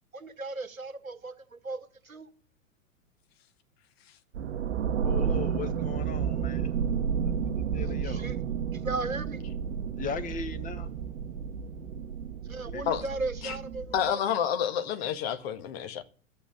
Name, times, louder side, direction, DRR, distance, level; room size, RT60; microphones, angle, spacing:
voice 1, 0.1-2.3 7.8-8.4 8.7-9.4 12.4-14.2, right 3 dB, 85° right, 1.7 m, -36 dB
sound 1, 4.3-14.1, right 7 dB, 60° right, 1.1 m, -31 dB
voice 2, 5.0-6.8 7.3-8.3 10.0-10.9 12.7-12.8, left 6 dB, 20° left, 1.3 m, -38 dB
voice 3, 13.9-16.0, left 9 dB, 50° left, 1.7 m, -29 dB
11.5 x 8.0 x 9.1 m
figure-of-eight pair, 100°, 40 cm